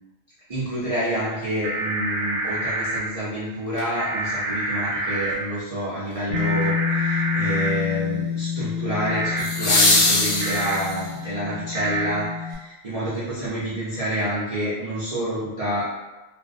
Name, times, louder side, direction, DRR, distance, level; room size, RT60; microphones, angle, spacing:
voice 1, 0.5-15.9, right 1 dB, 50° right, -11 dB, 0.4 m, -28 dB
sound 1, 1.6-3.0 4.0-5.3 6.3-7.7 9.0-9.4 10.4-10.7 11.7-12.1, right 2 dB, 70° right, 0.9 m, -27 dB
sound 2, 3.7-3.8 9.4-11.2 13.4-13.5, left 2 dB, 55° left, 0.6 m, -21 dB
Bass guitar, 6.3-12.6, left 7 dB, 75° left, 0.9 m, -28 dB
2.5 x 2.1 x 2.5 m, 1.1 s
omnidirectional pair, 1.4 m